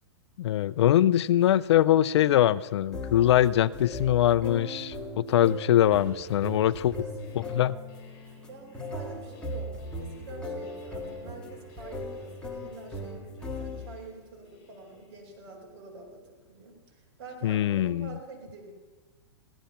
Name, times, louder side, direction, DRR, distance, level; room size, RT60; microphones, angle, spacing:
voice 1, 0.4-6.9 7.5-7.8 17.4-18.1, left 12 dB, 70° left, 18 dB, 0.5 m, -23 dB
sound 1, 2.9-14.1, left 1 dB, 5° left, 1.7 m, -38 dB
sound 2, 5.3-5.7 6.0-16.4, left 5 dB, 40° left, 6.1 m, -58 dB
voice 2, 6.2-7.3 8.3-16.2 16.5-18.8, right 3 dB, 50° right, 0 dB, 4.5 m, -47 dB
16.0 x 12.5 x 5.7 m, 1.3 s
hypercardioid pair, 140°, 15 cm